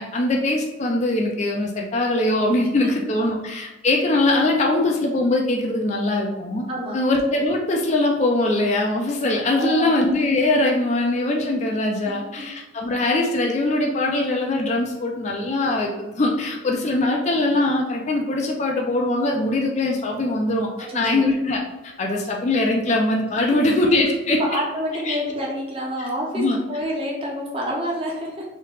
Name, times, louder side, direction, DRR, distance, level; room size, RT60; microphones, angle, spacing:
voice 1, 0.0-6.6 6.9-20.7 20.9-24.6 25.1-25.2 26.0-26.1 26.4-26.6, left 2 dB, 35° left, 0 dB, 0.4 m, -22 dB
voice 2, 6.7-7.0 9.6-10.0 20.8-21.2 24.5-28.4, equal, 25° right, -3 dB, 0.7 m, -28 dB
3.1 x 2.8 x 3.3 m, 1.1 s
head